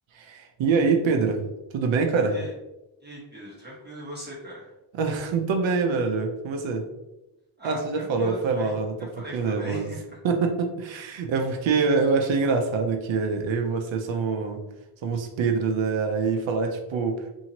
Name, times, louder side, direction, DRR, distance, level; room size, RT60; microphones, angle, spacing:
voice 1, 0.1-1.4 1.7-2.4 4.9-6.9 7.6-9.9 10.2-14.6 15.0-17.3, right 4 dB, 70° right, 5 dB, 0.6 m, -25 dB
voice 2, 3.0-4.7 7.6-10.2, right 1 dB, 20° right, -8 dB, 1.1 m, -40 dB
2.8 x 2.7 x 2.8 m, 0.97 s
wide cardioid pair, 115°, 48 cm